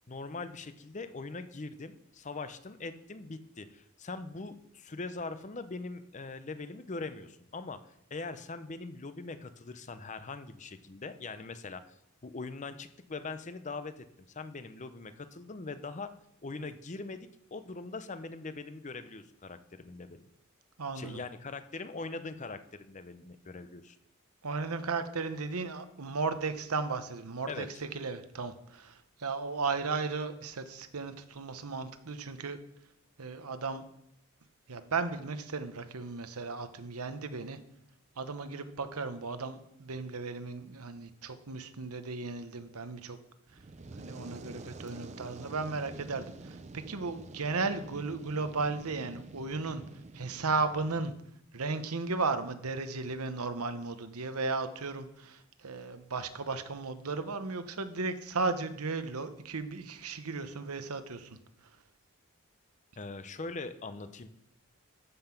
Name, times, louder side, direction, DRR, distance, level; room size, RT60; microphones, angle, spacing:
voice 1, 0.1-11.9 12.2-16.1 16.4-20.3 20.9-24.0 27.5-27.7 63.0-64.3, left 3 dB, 35° left, 11 dB, 0.6 m, -42 dB
voice 2, 20.8-21.2 24.4-32.6 33.2-33.8 34.7-37.6 38.2-43.2 44.0-49.8 50.1-51.1 51.5-61.4, right 4 dB, 85° right, 10 dB, 1.0 m, -35 dB
Fire, 43.5-51.1, right 3 dB, 30° right, 0.5 m, -48 dB
13.5 x 5.8 x 5.8 m, 0.76 s
head